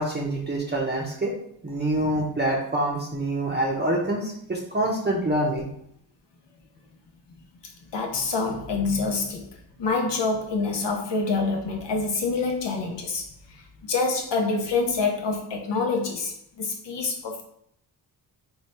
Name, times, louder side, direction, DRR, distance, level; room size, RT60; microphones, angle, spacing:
voice 1, 0.0-1.3 1.6-5.7, right 1 dB, 25° right, 0.7 m, -26 dB
voice 2, 7.9-17.4, left 4 dB, 70° left, 0.8 m, -27 dB
3.6 x 2.2 x 4.2 m
cardioid pair, 70°, 44 cm